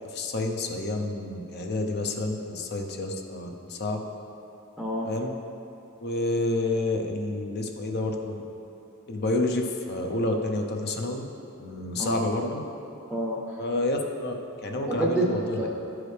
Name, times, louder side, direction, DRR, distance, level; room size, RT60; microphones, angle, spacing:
voice 1, 0.1-4.0 5.0-5.3 6.0-8.4 9.1-11.3 11.6-12.6 13.6-14.3 14.6-15.7, left 2 dB, 50° left, 3 dB, 0.6 m, -29 dB
voice 2, 4.8-5.1 12.0-12.3 13.1-13.6 14.9-15.3 15.6-15.7, right 1 dB, ahead, -4 dB, 0.7 m, -28 dB
12.0 x 4.7 x 3.3 m, 2.8 s
head